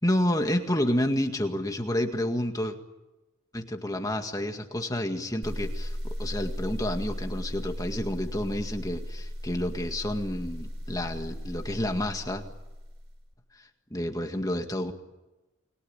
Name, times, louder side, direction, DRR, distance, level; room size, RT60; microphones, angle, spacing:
voice 1, 0.0-2.8 3.5-12.5 13.9-14.9, left 1 dB, 15° left, 5 dB, 1.9 m, -29 dB
sound 1, 5.4-13.2, equal, 70° right, 4.3 m, -36 dB
29.0 x 22.0 x 8.9 m, 1.0 s
head